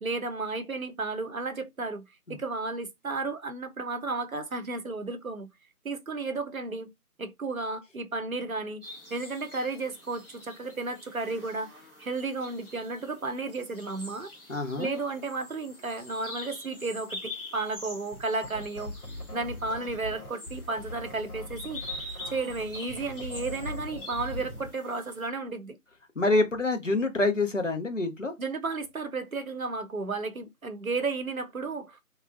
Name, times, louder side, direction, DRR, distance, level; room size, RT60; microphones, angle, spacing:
voice 1, 0.0-2.0 2.3-5.5 5.8-6.9 7.2-8.8 9.1-11.7 12.0-14.3 14.8-18.9 19.3-21.8 22.3-25.8 28.4-32.0, right 3 dB, 60° right, 0.7 m, -33 dB
sound 1, 8.8-25.3, left 2 dB, 35° left, 1.3 m, -45 dB
voice 2, 14.5-14.9 26.2-28.3, left 2 dB, 55° left, 0.7 m, -26 dB
sound 2, 18.1-24.8, left 1 dB, 70° left, 1.2 m, -40 dB
3.0 x 2.4 x 2.4 m
figure-of-eight pair, 180°, 46 cm